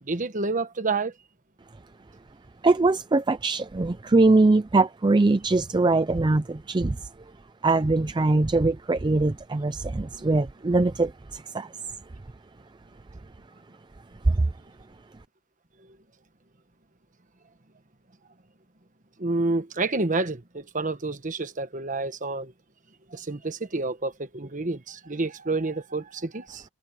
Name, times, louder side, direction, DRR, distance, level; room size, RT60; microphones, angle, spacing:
voice 1, 0.0-1.1 10.1-10.3 19.2-22.5 23.1-26.6, right 3 dB, 40° right, 1.3 m, -29 dB
voice 2, 2.6-7.0 7.6-11.7 14.3-14.4, right 3 dB, 20° right, 0.4 m, -22 dB
head